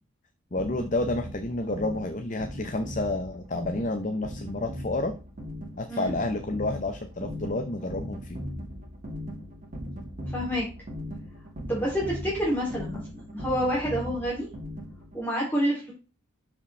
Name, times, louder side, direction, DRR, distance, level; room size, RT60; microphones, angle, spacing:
voice 1, 0.5-5.1 5.8-8.4, left 2 dB, 35° left, 6 dB, 0.7 m, -30 dB
sound 1, 0.6-15.2, equal, 35° right, 1.9 m, -39 dB
voice 2, 10.3-10.7 11.7-14.5 15.1-15.9, equal, 10° left, -5 dB, 2.8 m, -28 dB
12.5 x 5.1 x 3.3 m, 0.33 s
head